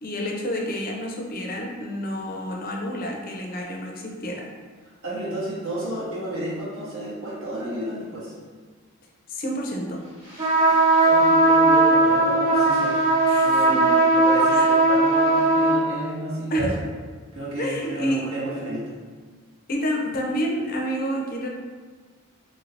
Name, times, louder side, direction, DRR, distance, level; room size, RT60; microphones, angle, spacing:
voice 1, 0.0-4.5 9.3-10.0 13.3-13.8 14.5-14.7 16.5-16.8 17.6-18.2 19.7-21.5, equal, 40° left, 0 dB, 0.4 m, -29 dB
voice 2, 5.0-8.3 10.6-13.0 13.4-16.7 17.3-18.9, right 1 dB, 65° right, -8 dB, 0.8 m, -32 dB
sound 1, 10.4-15.8, right 2 dB, 30° right, 0.8 m, -18 dB
2.7 x 2.5 x 3.2 m, 1.5 s
head